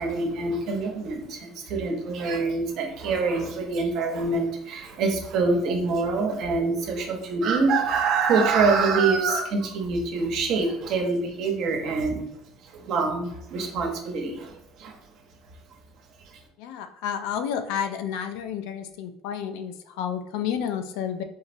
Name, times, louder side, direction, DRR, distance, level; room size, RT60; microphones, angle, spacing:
voice 1, 0.0-12.2 12.6-15.0, right 4 dB, 60° right, 2 dB, 0.7 m, -25 dB
voice 2, 16.6-21.2, left 8 dB, 80° left, 8 dB, 0.3 m, -30 dB
3.8 x 2.0 x 2.6 m, 0.73 s
supercardioid pair, 115°, 0 cm